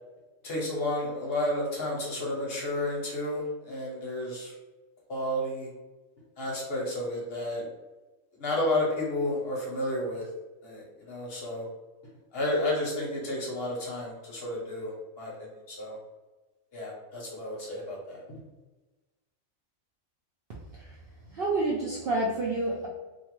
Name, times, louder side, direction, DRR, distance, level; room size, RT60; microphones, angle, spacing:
voice 1, 0.4-4.5 5.1-5.7 6.4-7.6 8.4-10.3 10.6-11.7 12.3-16.0 16.7-18.2, left 1 dB, 55° left, -3 dB, 0.8 m, -31 dB
voice 2, 21.3-22.9, right 2 dB, 65° right, -4 dB, 0.5 m, -28 dB
2.6 x 2.3 x 2.9 m, 1.2 s
omnidirectional pair, 1.4 m